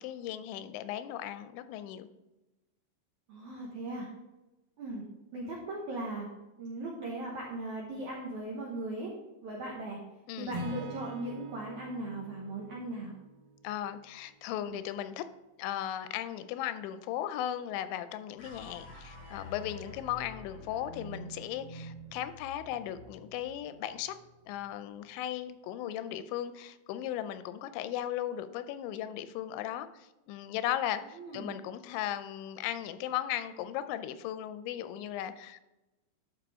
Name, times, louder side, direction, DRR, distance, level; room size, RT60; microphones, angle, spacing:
voice 1, 0.0-2.1 10.3-10.6 13.6-15.2 15.6-24.2 24.5-35.6, left 11 dB, 85° left, 12 dB, 2.9 m, -37 dB
voice 2, 3.3-4.1 4.8-5.0 5.3-6.3 6.6-9.1 9.4-10.0 10.4-13.1 14.7-14.8 31.1-31.6, right 2 dB, 80° right, -2 dB, 1.7 m, -38 dB
Acoustic guitar / Strum, 10.5-14.6, right 1 dB, 65° right, 2.5 m, -44 dB
sound 1, 18.4-24.8, left 1 dB, 40° left, 1.6 m, -48 dB
11.5 x 5.1 x 3.5 m, 1.0 s
omnidirectional pair, 5.1 m